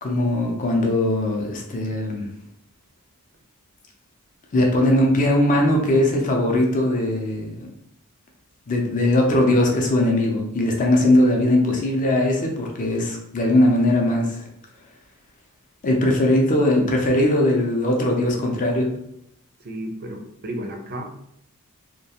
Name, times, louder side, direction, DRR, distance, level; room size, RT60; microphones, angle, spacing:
voice 1, 0.0-2.3 4.5-7.7 8.7-14.4 15.8-18.9, left 1 dB, 35° left, 1 dB, 0.5 m, -20 dB
voice 2, 19.6-21.2, right 1 dB, 45° right, 3 dB, 0.4 m, -33 dB
2.3 x 2.2 x 2.8 m, 0.73 s
head